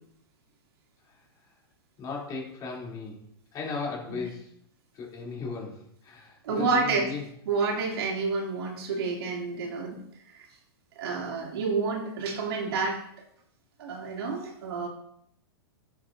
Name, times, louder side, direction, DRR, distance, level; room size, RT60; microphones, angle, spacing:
voice 1, 2.0-3.2 3.5-4.5 4.9-7.2, left 4 dB, 30° left, -3 dB, 3.2 m, -36 dB
voice 2, 6.4-7.1 7.5-10.0 11.0-13.0 13.8-14.9, right 4 dB, 70° right, -2 dB, 2.8 m, -29 dB
11.0 x 7.9 x 2.7 m, 0.72 s
hypercardioid pair, 140°, 13 cm